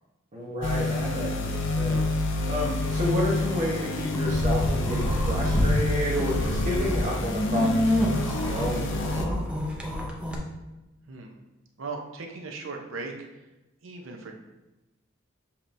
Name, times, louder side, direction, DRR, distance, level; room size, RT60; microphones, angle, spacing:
voice 1, 0.3-9.5, left 1 dB, 35° right, -5 dB, 0.8 m, -31 dB
sound 1, 0.6-9.3, left 2 dB, 65° left, 0.5 m, -28 dB
sound 2, 4.1-5.7 6.1-10.4, equal, 5° right, 0.6 m, -27 dB
voice 2, 11.1-11.4 11.8-13.1 13.8-14.3, right 3 dB, 70° right, 2 dB, 0.7 m, -37 dB
7.1 x 2.9 x 2.6 m, 1.0 s
head